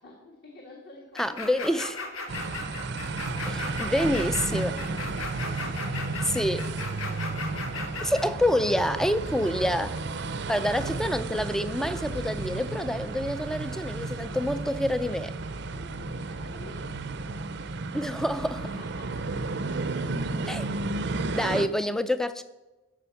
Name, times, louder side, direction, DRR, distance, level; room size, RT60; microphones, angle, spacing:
voice 1, 0.0-1.6 2.0-6.3 7.2-7.8 8.9-9.7 10.4-10.5 15.5-16.9 18.6-19.6, left 2 dB, 50° left, 1.7 m, -51 dB
sound 1, 1.2-8.3, left 3 dB, 80° left, 1.7 m, -36 dB
voice 2, 1.2-2.0 3.8-4.7 6.3-6.6 8.0-9.9 10.5-15.3 17.9-18.6 20.5-20.7 21.3-22.4, equal, ahead, 0.4 m, -27 dB
sound 2, 2.3-21.7, right 3 dB, 55° right, 0.6 m, -33 dB
13.5 x 5.2 x 7.0 m
head